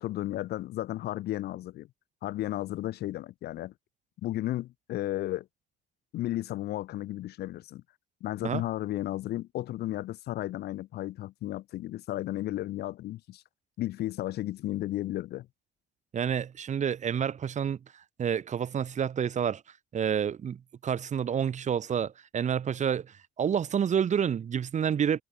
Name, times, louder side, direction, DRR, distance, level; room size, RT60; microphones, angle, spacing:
voice 1, 0.0-1.9 2.2-3.7 4.2-5.5 6.1-7.8 8.2-13.4 13.8-15.5, left 15 dB, 70° left, 2.0 m, -33 dB
voice 2, 16.1-17.8 18.2-19.6 19.9-25.2, right 8 dB, 45° right, 4.4 m, -29 dB
cardioid pair, 110°, 17 cm